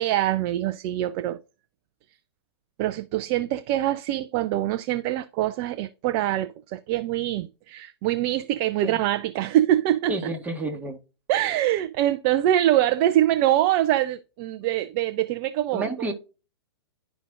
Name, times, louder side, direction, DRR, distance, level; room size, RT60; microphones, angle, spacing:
voice 1, 0.0-1.4 2.8-10.2 11.3-16.1, right 13 dB, 30° right, 0.4 m, -24 dB
voice 2, 10.1-11.0 15.7-16.1, right 2 dB, 10° right, 1.2 m, -30 dB
11.5 x 5.0 x 2.4 m
figure-of-eight pair, 110°, 14 cm